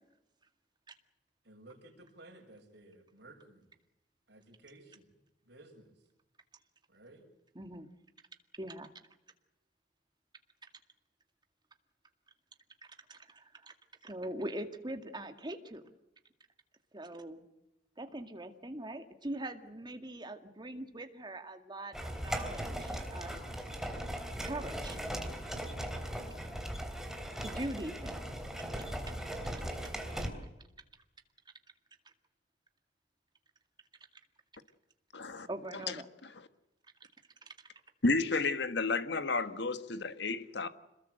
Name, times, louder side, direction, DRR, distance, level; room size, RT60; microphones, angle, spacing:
voice 1, 1.4-3.8 4.3-5.2 5.4-5.9 6.9-7.3, right 2 dB, 65° right, 7.1 m, -56 dB
voice 2, 7.6-7.9 8.5-8.9 12.8-13.7 14.0-15.9 16.9-17.5 18.0-23.7 24.2-25.2 26.0-26.4 26.8-28.1 29.8-29.9 35.5-36.1 37.0-37.1, right 1 dB, 25° right, 2.1 m, -43 dB
sound 1, 21.9-30.3, equal, 5° right, 3.4 m, -39 dB
voice 3, 35.1-35.5 35.9-36.0 38.0-40.7, left 3 dB, 65° left, 1.5 m, -31 dB
27.0 x 20.5 x 7.9 m
head